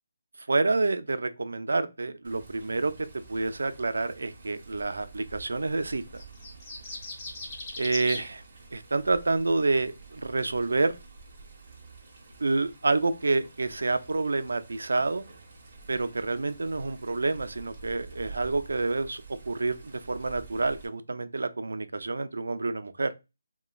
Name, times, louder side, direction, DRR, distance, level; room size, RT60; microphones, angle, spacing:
voice 1, 0.5-6.2 7.8-8.4 8.7-11.0 12.4-15.2 15.9-23.1, right 3 dB, 85° right, 0.3 m, -28 dB
Water, 2.2-20.9, right 4 dB, 35° right, 0.8 m, -49 dB
sound 1, 6.2-8.3, left 2 dB, 20° left, 0.5 m, -38 dB
3.0 x 2.1 x 2.3 m
hypercardioid pair, 175°, 0 cm